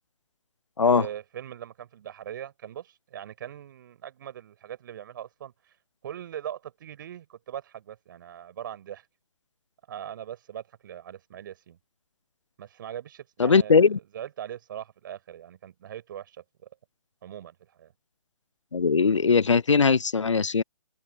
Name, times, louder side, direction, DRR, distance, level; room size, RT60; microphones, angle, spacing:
voice 1, 0.9-5.7 6.0-9.1 9.9-11.8 12.6-13.9 14.1-16.7 17.2-17.9, right 10 dB, 40° right, 7.1 m, -40 dB
voice 2, 13.4-14.0 18.7-20.6, left 5 dB, 70° left, 0.8 m, -20 dB
figure-of-eight pair, 140°, 16 cm